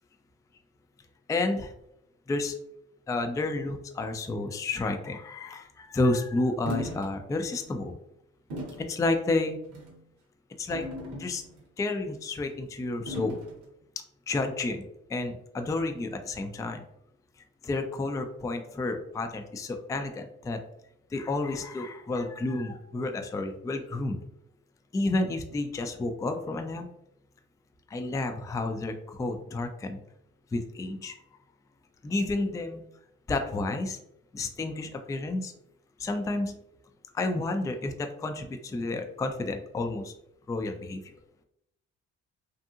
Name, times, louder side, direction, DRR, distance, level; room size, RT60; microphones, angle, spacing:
voice 1, 1.3-1.7 2.3-2.6 3.1-7.9 8.8-9.6 10.6-10.9 11.1-11.4 11.8-13.4 14.3-16.8 17.6-20.6 21.1-24.2 24.9-26.9 27.9-30.0 30.5-31.1 32.0-32.8 33.3-34.0 34.3-35.5 36.0-36.5 37.1-40.1 40.5-41.0, left 2 dB, 10° left, 5 dB, 0.3 m, -30 dB
sound 1, 6.7-7.1 7.6-7.7 8.5-8.9 9.7-10.0 10.7-11.6 13.1-13.6, left 1 dB, 85° right, 0.7 m, -37 dB
2.7 x 2.6 x 2.4 m, 0.80 s
supercardioid pair, 55°, 30 cm